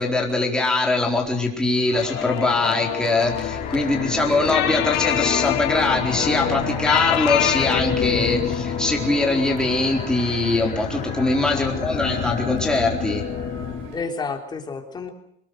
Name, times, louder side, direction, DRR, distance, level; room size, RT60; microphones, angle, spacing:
voice 1, 0.0-13.2, left 2 dB, 5° left, 0 dB, 4.3 m, -22 dB
sound 1, 1.9-7.8, left 15 dB, 60° left, 1.8 m, -26 dB
sound 2, 1.9-14.0, right 4 dB, 70° right, 8.0 m, -40 dB
sound 3, 3.1-13.9, left 8 dB, 40° left, 3.8 m, -28 dB
voice 2, 11.5-11.9 13.9-15.1, left 4 dB, 20° left, 4 dB, 3.5 m, -31 dB
24.5 x 21.0 x 6.6 m, 0.74 s
cardioid pair, 150°, 20 cm